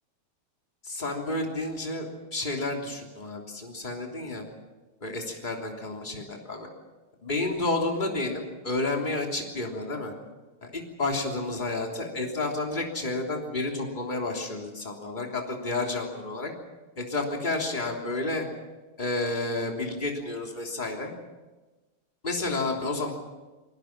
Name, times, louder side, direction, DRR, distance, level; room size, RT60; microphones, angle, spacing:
voice 1, 0.8-4.4 5.0-6.7 7.2-10.1 10.6-16.5 17.0-18.5 19.0-21.1 22.2-23.1, left 2 dB, 20° left, 0 dB, 3.4 m, -30 dB
28.0 x 20.5 x 6.0 m, 1.2 s
omnidirectional pair, 2.4 m